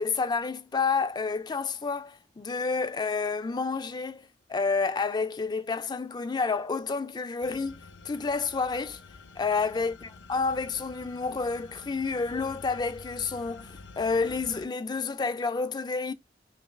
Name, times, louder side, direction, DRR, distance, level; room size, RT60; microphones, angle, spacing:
voice 1, 0.0-7.8 8.0-9.0 9.4-16.1, left 4 dB, 25° left, 0.3 m, -29 dB
sound 1, 7.4-14.7, left 3 dB, 80° left, 0.5 m, -48 dB
5.1 x 2.4 x 2.2 m
head